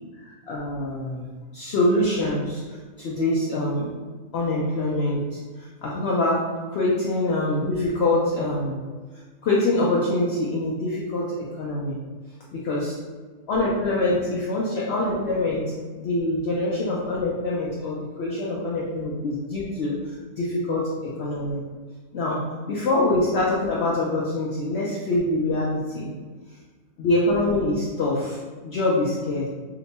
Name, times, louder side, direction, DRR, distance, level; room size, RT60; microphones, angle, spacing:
voice 1, 0.5-1.3 1.5-2.6 3.0-3.9 4.3-8.8 9.4-12.0 12.5-13.0 13.5-15.7 16.0-21.6 22.1-26.1 27.0-29.5, left 2 dB, 75° left, -5 dB, 0.6 m, -25 dB
2.8 x 2.2 x 4.0 m, 1.4 s
omnidirectional pair, 1.6 m